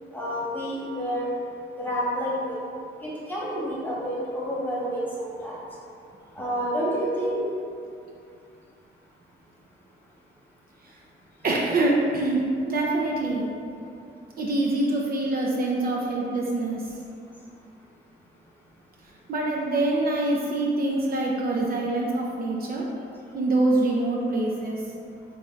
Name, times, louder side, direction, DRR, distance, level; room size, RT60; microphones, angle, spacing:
voice 1, 0.1-1.3 1.8-2.5 3.0-5.6 6.3-7.4, equal, 10° left, -7 dB, 1.1 m, -29 dB
voice 2, 11.4-13.5 14.4-16.8 19.3-22.9 23.3-24.8, right 2 dB, 50° right, -2 dB, 0.5 m, -25 dB
3.2 x 2.6 x 3.7 m, 2.5 s
cardioid pair, 90°, 20 cm